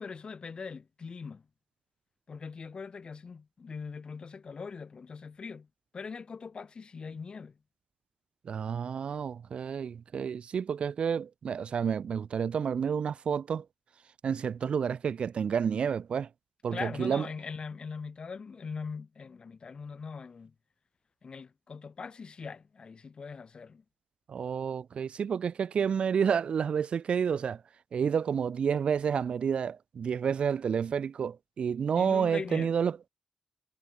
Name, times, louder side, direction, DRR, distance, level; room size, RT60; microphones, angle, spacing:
voice 1, 0.0-1.5 2.3-5.7 5.9-7.6 16.7-20.5 21.2-23.8 32.0-32.8, left 5 dB, 50° left, 7.3 m, -41 dB
voice 2, 8.4-13.6 14.2-16.3 16.6-17.3 24.3-27.6 27.9-33.1, right 7 dB, 60° right, 1.3 m, -30 dB
supercardioid pair, 45°, 2 cm